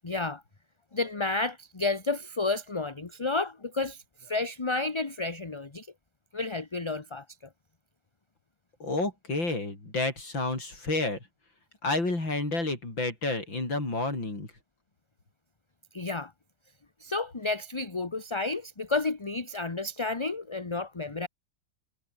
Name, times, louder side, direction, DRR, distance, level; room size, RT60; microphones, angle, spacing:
voice 1, 0.0-0.4 0.9-5.9 6.3-7.2 15.9-16.3 17.0-21.3, left 3 dB, 20° left, 0.9 m, -31 dB
voice 2, 8.8-11.2 11.8-14.5, left 2 dB, 90° left, 7.8 m, -30 dB
omnidirectional pair, 2.0 m